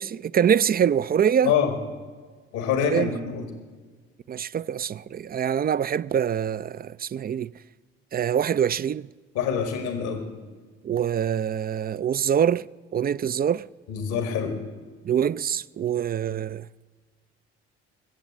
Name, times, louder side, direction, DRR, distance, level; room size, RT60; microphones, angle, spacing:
voice 1, 0.0-1.6 2.8-3.1 4.3-7.5 8.1-9.1 10.8-12.7 12.9-13.7 15.0-16.7, right 8 dB, 30° right, 0.4 m, -24 dB
voice 2, 2.5-3.5 9.3-10.3 13.9-14.6, left 7 dB, 80° left, 1.9 m, -25 dB
23.0 x 7.9 x 7.3 m
hypercardioid pair, 55°, 30 cm